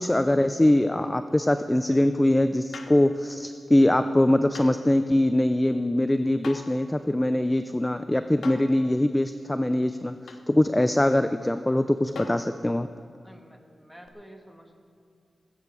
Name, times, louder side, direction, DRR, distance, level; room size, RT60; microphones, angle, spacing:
voice 1, 0.0-10.2 10.5-12.9, left 1 dB, 15° left, 10 dB, 0.4 m, -22 dB
sound 1, 2.7-3.1 4.5-4.8 6.4-6.8 8.4-8.8 10.3-10.5 12.2-12.5 14.1-14.2, left 4 dB, 85° left, 0.9 m, -40 dB
voice 2, 13.2-14.8, equal, ahead, 3 dB, 1.5 m, -49 dB
20.0 x 8.6 x 4.8 m, 2.4 s
wide cardioid pair, 80°, 0 cm